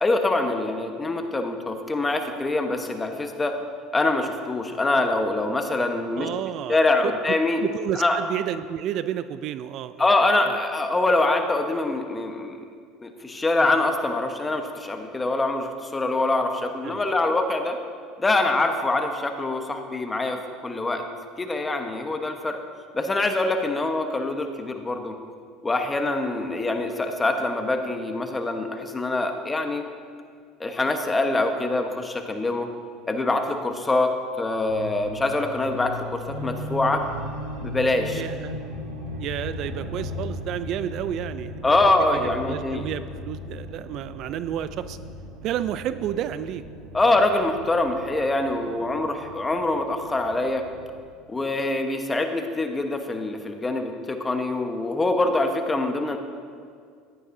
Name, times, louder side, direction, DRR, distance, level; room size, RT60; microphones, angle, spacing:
voice 1, 0.0-3.6 3.9-6.3 6.7-7.6 8.0-8.2 10.0-12.6 13.0-17.8 18.2-21.0 21.4-22.6 22.9-25.1 25.6-29.8 30.6-32.7 33.1-34.1 34.4-37.0 37.6-38.2 41.6-42.8 46.9-50.6 51.3-56.2, left 2 dB, 15° left, 5 dB, 1.1 m, -24 dB
voice 2, 6.2-7.1 7.6-10.1 10.5-10.6 16.8-17.1 38.1-38.6 39.2-41.5 42.1-45.0 45.4-46.6, right 11 dB, 60° right, 13 dB, 0.3 m, -31 dB
sound 1, 34.7-51.0, left 1 dB, 85° right, 1.5 m, -37 dB
14.0 x 9.7 x 2.7 m, 2.2 s
supercardioid pair, 90°, 0 cm